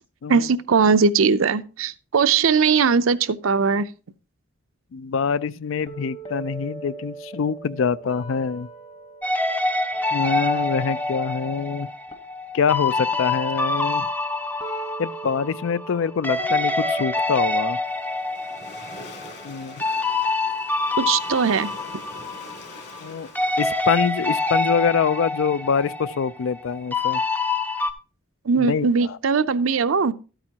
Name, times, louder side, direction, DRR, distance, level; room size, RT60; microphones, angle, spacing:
voice 1, 0.3-3.9 21.0-21.7 28.4-30.1, right 5 dB, 75° right, 0.6 m, -20 dB
voice 2, 4.9-8.7 10.1-11.9 12.5-14.1 15.0-17.8 19.4-19.8 23.0-23.3 23.6-27.2 28.6-28.9, left 6 dB, 70° left, 0.4 m, -25 dB
sound 1, 5.9-11.8 12.1-19.9, right 2 dB, 30° left, 1.1 m, -39 dB
sound 2, 9.2-16.0 16.2-23.1 23.3-27.9, left 3 dB, 10° left, 0.5 m, -26 dB
Waves surf, 17.9-24.7, left 2 dB, 50° left, 2.7 m, -44 dB
13.0 x 8.9 x 2.8 m
head